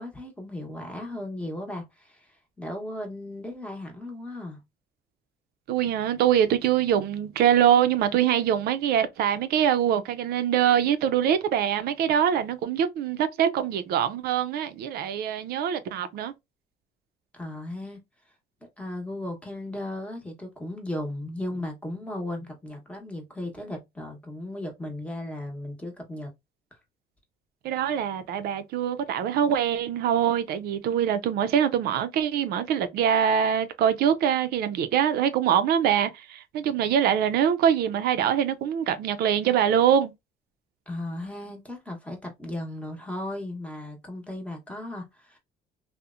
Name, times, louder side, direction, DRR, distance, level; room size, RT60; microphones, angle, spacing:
voice 1, 0.0-4.6 17.3-18.0 18.6-26.3 40.9-45.4, left 1 dB, 5° left, 0.8 m, -36 dB
voice 2, 5.7-16.3 27.6-40.1, right 9 dB, 70° right, 0.4 m, -24 dB
2.7 x 2.0 x 2.3 m
cardioid pair, 110°, 17 cm